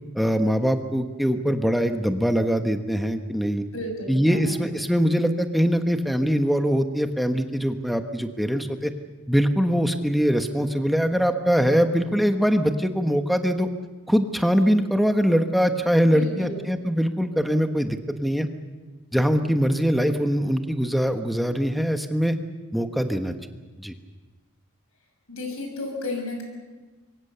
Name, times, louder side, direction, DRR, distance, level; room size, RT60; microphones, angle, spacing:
voice 1, 0.1-3.6 4.1-8.9 9.3-13.7 14.1-18.5 19.1-22.4 22.7-23.3 23.8-23.9, equal, ahead, 6 dB, 1.2 m, -22 dB
voice 2, 3.7-4.6 16.0-16.6 25.3-26.4, left 2 dB, 70° left, 3 dB, 6.4 m, -32 dB
26.0 x 23.5 x 6.8 m, 1.3 s
head